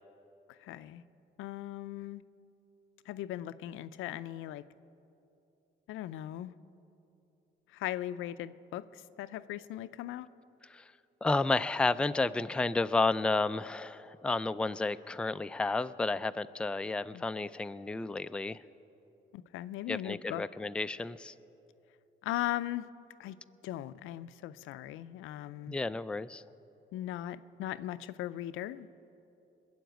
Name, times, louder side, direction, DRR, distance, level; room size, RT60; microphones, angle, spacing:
voice 1, 0.5-1.0 1.4-2.2 3.1-4.6 5.9-6.5 7.7-10.3 17.1-17.2 19.3-20.4 22.2-22.9 23.2-23.4 23.6-25.8 26.9-29.0, left 13 dB, 90° left, 14 dB, 0.5 m, -38 dB
voice 2, 11.2-18.6 19.9-21.3 25.7-26.4, left 3 dB, 5° left, 11 dB, 0.3 m, -31 dB
21.0 x 7.2 x 9.1 m, 2.9 s
cardioid pair, 90°, 20 cm